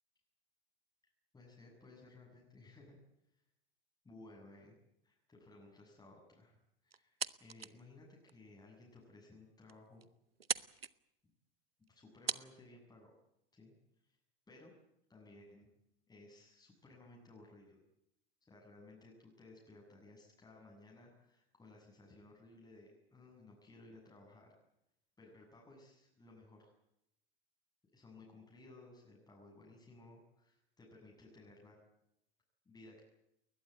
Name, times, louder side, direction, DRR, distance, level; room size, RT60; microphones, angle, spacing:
voice 1, 1.3-3.0 4.0-4.8 5.0-6.6 6.8-10.1 11.9-13.1 13.5-13.7 14.0-14.2 14.5-14.7 15.1-15.7 16.1-17.8 18.5-24.5 25.2-26.7 27.9-31.8 32.7-33.0, left 2 dB, 15° left, -1 dB, 7.3 m, -58 dB
sound 1, 6.9-7.8 8.3-8.4 9.0-9.1 9.4-9.5 9.7-10.1 10.4-10.9 11.8-11.9 12.3-12.5, right 6 dB, 85° right, 0.9 m, -39 dB
21.0 x 20.5 x 9.3 m, 0.80 s
figure-of-eight pair, 90°, 29 cm